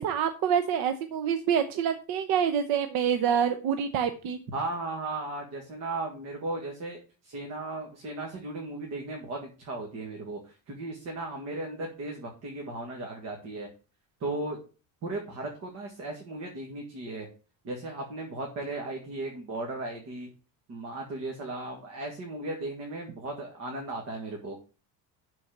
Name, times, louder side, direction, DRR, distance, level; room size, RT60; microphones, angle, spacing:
voice 1, 0.0-4.4, right 8 dB, 60° right, 9 dB, 0.9 m, -26 dB
voice 2, 4.5-13.7 14.2-14.6 15.0-17.3 17.6-20.3 20.7-24.6, right 2 dB, 40° right, 1 dB, 2.0 m, -36 dB
12.0 x 4.5 x 5.9 m, 0.34 s
cardioid pair, 175°, 41 cm